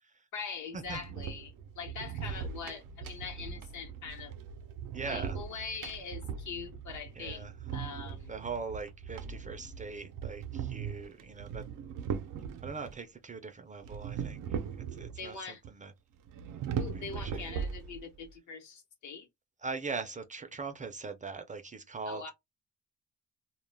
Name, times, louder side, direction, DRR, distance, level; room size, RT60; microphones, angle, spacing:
voice 1, 0.3-4.3 5.1-8.3 15.2-15.6 16.8-19.3 22.1-22.3, left 5 dB, 70° left, 0.9 m, -42 dB
sound 1, 0.8-13.0 13.8-15.3 15.6-15.7 16.3-18.2, right 7 dB, 90° right, 0.5 m, -39 dB
voice 2, 4.9-5.4 7.2-7.5 8.3-11.6 12.6-15.9 17.2-17.5 19.6-22.2, right 4 dB, 25° right, 0.3 m, -41 dB
2.2 x 2.1 x 3.2 m
cardioid pair, 140°, 31 cm